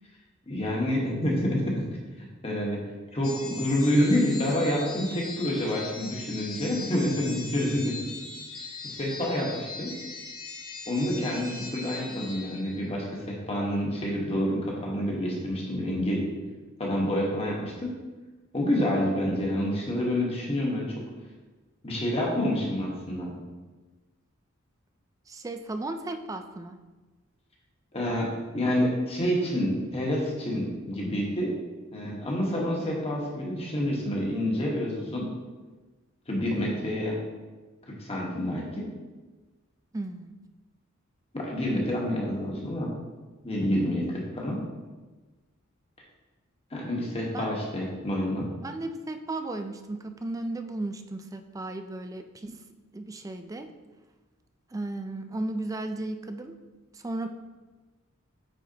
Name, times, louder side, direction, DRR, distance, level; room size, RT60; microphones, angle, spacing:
voice 1, 0.5-1.8 2.4-2.8 3.1-7.9 8.8-9.9 10.9-16.2 16.8-17.9 18.5-20.9 21.8-23.4 27.9-31.5 31.9-35.3 36.3-37.2 38.0-38.9 41.3-43.0 43.4-44.6 46.7-48.5, left 1 dB, 30° left, -2 dB, 1.2 m, -28 dB
sound 1, 3.2-13.1, left 3 dB, 75° left, 1.3 m, -40 dB
voice 2, 25.3-26.8 39.9-40.3 47.3-47.5 48.6-52.6 52.9-53.7 54.7-56.5 56.9-57.3, right 2 dB, 15° right, 7 dB, 0.3 m, -35 dB
8.8 x 4.2 x 2.8 m, 1.3 s
head